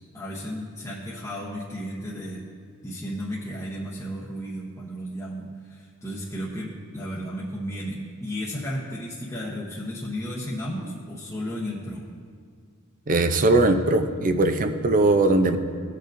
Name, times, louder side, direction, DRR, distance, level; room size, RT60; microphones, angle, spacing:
voice 1, 0.1-2.4 2.8-12.1, equal, 15° left, -6 dB, 0.9 m, -34 dB
voice 2, 13.1-15.6, right 2 dB, 40° right, 8 dB, 0.5 m, -20 dB
18.5 x 6.6 x 2.6 m, 2.1 s
head